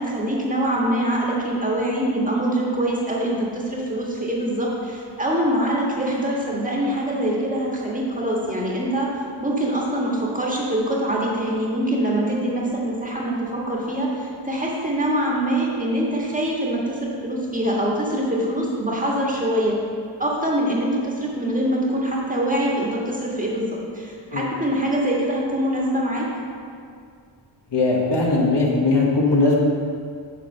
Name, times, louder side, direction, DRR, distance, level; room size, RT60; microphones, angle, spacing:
voice 1, 0.0-9.1 9.4-19.8 20.2-26.3, right 1 dB, 15° right, -4 dB, 1.6 m, -24 dB
voice 2, 27.7-29.6, left 3 dB, 60° left, -2 dB, 1.4 m, -19 dB
7.4 x 4.3 x 6.5 m, 2.2 s
wide cardioid pair, 80°, 47 cm